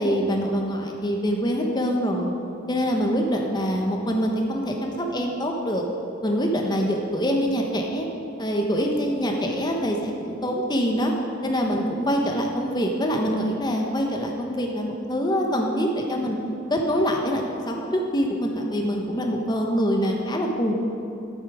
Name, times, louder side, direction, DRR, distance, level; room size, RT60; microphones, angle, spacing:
voice 1, 0.0-2.3 2.7-5.8 6.2-8.1 8.4-11.1 11.4-16.4 16.7-20.7, equal, 20° left, 1 dB, 1.1 m, -24 dB
10.0 x 8.2 x 4.9 m, 2.7 s
head